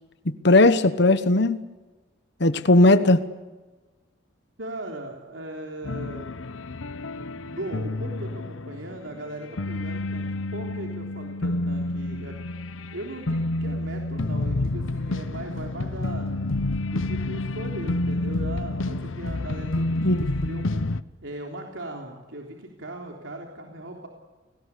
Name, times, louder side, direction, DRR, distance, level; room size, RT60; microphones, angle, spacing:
voice 1, 0.4-1.6 2.4-3.2 20.0-20.2, left 2 dB, 60° left, 11 dB, 1.2 m, -17 dB
voice 2, 4.6-6.3 7.2-12.4 12.9-16.3 16.9-24.1, right 1 dB, 75° right, 1 dB, 3.5 m, -38 dB
sound 1, 5.8-9.2 9.4-21.0, left 2 dB, 85° left, 0.9 m, -29 dB
29.5 x 19.5 x 8.4 m, 1.3 s
head